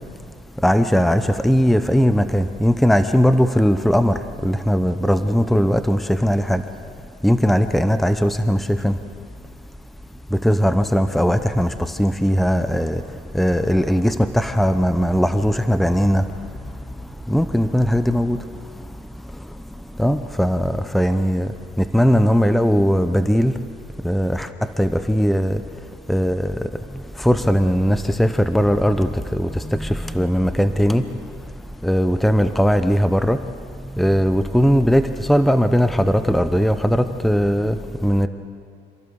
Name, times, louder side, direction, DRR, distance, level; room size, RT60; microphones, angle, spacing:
voice 1, 0.6-6.6 7.2-8.9 10.3-11.7 12.0-13.0 13.3-16.2 17.3-18.4 20.0-21.5 21.9-23.5 24.0-24.5 24.8-25.6 26.1-26.5 27.2-29.9 30.1-31.0 31.8-33.4 34.0-37.8 38.0-38.3, equal, ahead, 10 dB, 0.8 m, -18 dB
27.5 x 16.0 x 7.0 m, 2.2 s
cardioid pair, 110°, 17 cm